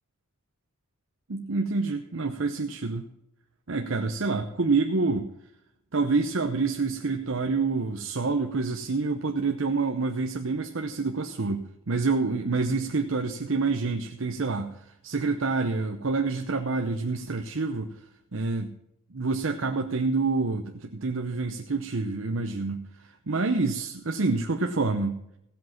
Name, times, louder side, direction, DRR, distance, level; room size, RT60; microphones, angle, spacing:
voice 1, 1.3-3.1 3.7-5.3 5.9-17.9 18.3-18.7 19.1-25.2, right 3 dB, 70° right, 4 dB, 0.8 m, -27 dB
16.0 x 7.9 x 5.8 m, 0.80 s
head